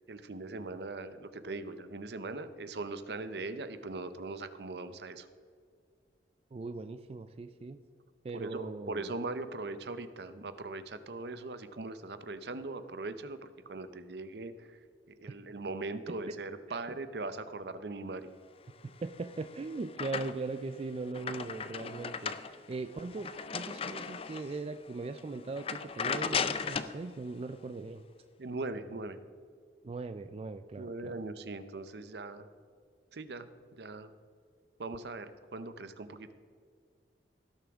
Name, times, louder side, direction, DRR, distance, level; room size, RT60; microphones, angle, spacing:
voice 1, 0.1-5.3 8.3-14.8 15.1-18.3 28.4-29.2 30.8-32.5 33.1-33.5 33.8-34.1 34.8-36.3, right 3 dB, 65° right, 12 dB, 0.7 m, -40 dB
voice 2, 6.5-7.8 8.2-9.1 16.3-16.4 16.7-16.8 18.8-28.0 29.8-31.1, right 3 dB, 35° right, 9 dB, 0.3 m, -40 dB
sound 1, 19.1-20.6 21.0-24.6 25.0-25.2 25.6-27.0, left 6 dB, 35° left, 0.4 m, -36 dB
17.0 x 7.0 x 3.6 m, 2.2 s
head